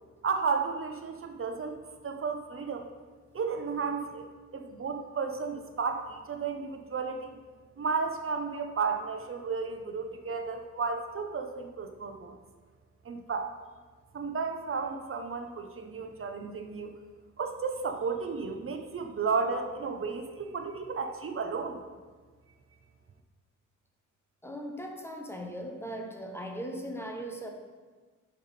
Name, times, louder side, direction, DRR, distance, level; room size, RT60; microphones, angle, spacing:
voice 1, 0.2-1.8 2.0-2.9 3.3-4.3 4.5-7.4 7.8-12.3 13.0-13.5 14.1-16.9 17.4-21.8, right 5 dB, 40° right, 5 dB, 0.6 m, -33 dB
voice 2, 24.4-27.5, equal, 5° left, 2 dB, 0.7 m, -38 dB
8.8 x 3.6 x 4.1 m, 1.4 s
wide cardioid pair, 120°, 33 cm